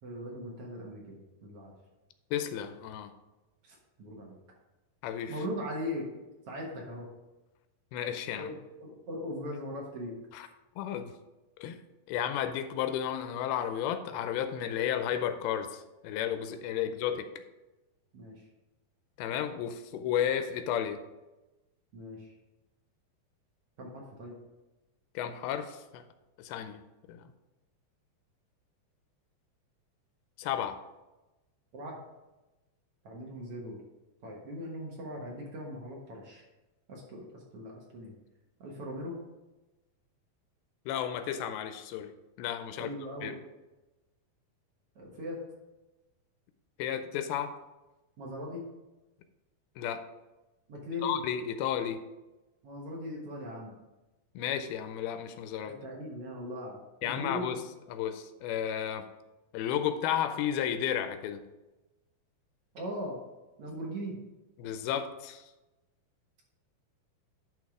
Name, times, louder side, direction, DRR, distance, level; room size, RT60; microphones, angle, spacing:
voice 1, 0.0-1.7 3.6-4.4 5.3-6.1 6.5-7.1 8.3-10.2 16.8-16.9 18.1-18.4 21.9-22.3 23.8-24.4 31.7-32.0 33.0-33.8 34.2-36.4 36.9-38.1 38.6-39.2 42.8-43.4 44.9-45.4 48.2-48.6 50.7-51.2 52.6-53.8 55.6-57.5 62.7-63.2 63.6-64.2, equal, 60° right, -2 dB, 1.6 m, -39 dB
voice 2, 2.3-3.1 5.0-5.4 7.9-8.5 10.3-10.5 10.8-11.1 11.6-11.8 12.1-17.3 19.2-21.0 25.2-26.0 26.4-26.8 27.1-27.3 30.4-30.8 40.9-42.1 42.4-42.9 43.2-43.4 46.8-47.6 49.8-50.1 51.0-52.0 54.4-55.8 57.0-57.6 57.9-59.1 59.5-61.4 64.6-65.5, left 9 dB, 85° left, 9 dB, 2.6 m, -33 dB
10.5 x 3.8 x 4.9 m, 1.1 s
omnidirectional pair, 4.4 m